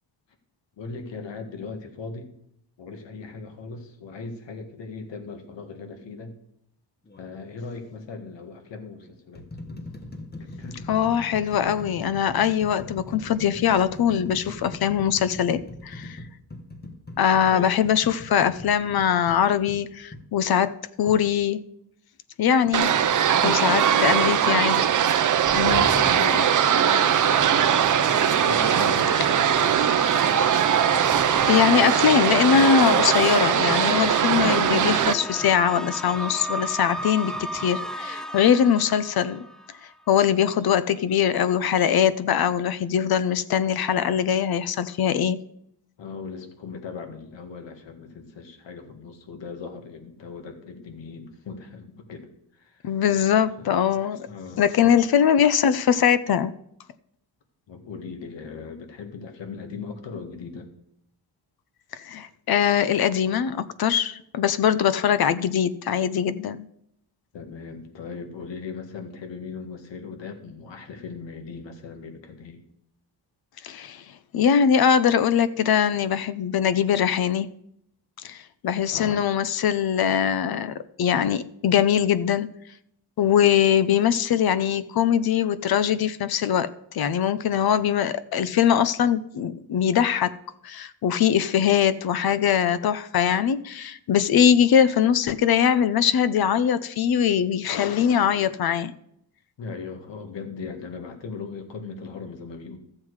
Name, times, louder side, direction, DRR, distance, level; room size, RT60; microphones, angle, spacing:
voice 1, 0.8-2.3 2.8-6.3 7.2-9.5 10.4-10.8 17.5-17.8 22.7-23.1 23.6-24.2 25.7-27.7 28.4-29.9 46.0-53.0 53.6-53.8 54.3-55.0 57.7-60.7 67.3-72.6 78.9-79.2 99.6-102.8, left 5 dB, 75° left, 1.9 m, -38 dB
sound 1, 7.1-7.3 8.2-8.3 9.0-20.3 21.1-21.2, left 2 dB, 20° left, 1.2 m, -41 dB
voice 2, 10.9-16.2 17.2-21.6 22.4-22.9 23.4-24.9 25.5-25.9 31.5-39.4 40.1-45.4 52.8-54.3 54.6-56.5 62.0-66.6 73.6-74.0 74.3-77.5 78.2-78.4 78.6-82.5 83.2-86.7 86.9-90.3 90.6-98.9, left 8 dB, 55° left, 0.7 m, -22 dB
sound 2, 22.7-35.1, right 9 dB, 45° right, 0.6 m, -21 dB
sound 3, 25.5-39.8, equal, ahead, 0.3 m, -33 dB
13.5 x 7.6 x 4.8 m
wide cardioid pair, 160°, 44 cm